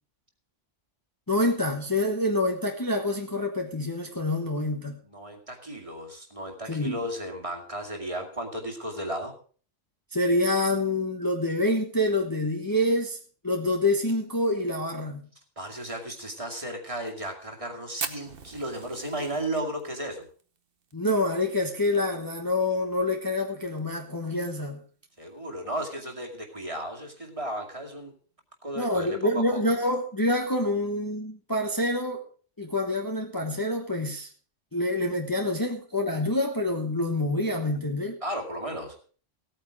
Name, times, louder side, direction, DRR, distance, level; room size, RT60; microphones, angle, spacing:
voice 1, 1.3-5.0 6.7-7.0 10.1-13.2 13.4-15.3 20.9-24.8 28.8-32.2 32.6-34.3 34.7-38.2, left 1 dB, 20° left, 3 dB, 1.2 m, -27 dB
voice 2, 5.0-9.3 15.6-20.3 25.2-28.1 28.6-29.6 38.2-39.0, right 1 dB, 25° right, 2 dB, 2.3 m, -34 dB
Fire, 18.0-22.5 22.8-22.9 23.1-23.2 23.6-24.0 24.5-24.6 25.7-25.8, right 5 dB, 50° right, 1.3 m, -39 dB
16.5 x 9.1 x 4.9 m, 0.41 s
omnidirectional pair, 1.2 m